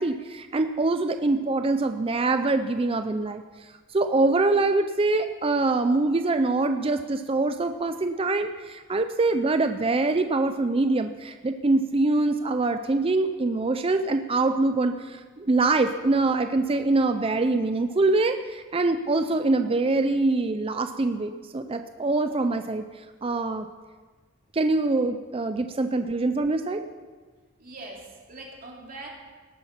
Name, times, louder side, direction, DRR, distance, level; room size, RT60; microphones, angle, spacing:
voice 1, 0.0-3.4 3.9-22.8 23.2-23.7 24.5-26.8, right 3 dB, 30° right, 8 dB, 0.5 m, -24 dB
voice 2, 27.6-29.1, right 2 dB, 45° right, -1 dB, 2.8 m, -42 dB
18.5 x 8.5 x 5.8 m, 1.4 s
head